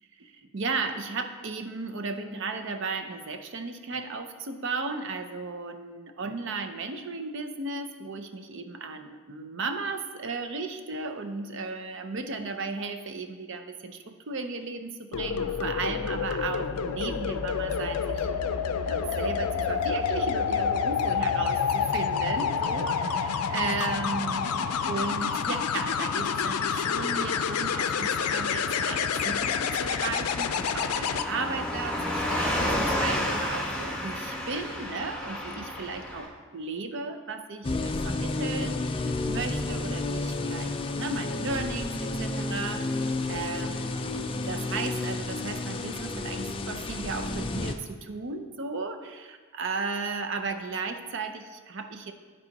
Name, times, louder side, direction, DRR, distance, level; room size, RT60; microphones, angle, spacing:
voice 1, 0.2-18.5 18.9-52.1, right 4 dB, 55° right, 7 dB, 0.6 m, -35 dB
sound 1, 15.1-31.2 33.2-33.4, left 6 dB, 90° left, 0.4 m, -28 dB
Car passing by / Truck, 21.9-36.3, left 1 dB, 5° left, 1.1 m, -34 dB
sound 2, 37.6-47.7, left 2 dB, 25° left, 0.3 m, -31 dB
9.6 x 4.7 x 4.1 m, 1.5 s
head